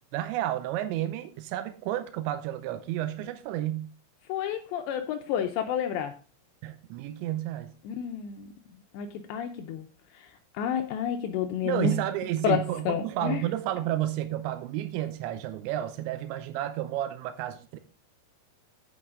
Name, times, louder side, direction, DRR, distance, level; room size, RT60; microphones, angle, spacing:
voice 1, 0.1-3.9 6.6-7.7 11.6-17.8, right 13 dB, 85° right, 2.7 m, -31 dB
voice 2, 4.3-6.1 7.8-8.5 8.9-9.9 10.1-11.9 12.4-13.4, left 8 dB, 90° left, 2.5 m, -30 dB
8.7 x 8.6 x 3.7 m
omnidirectional pair, 5.9 m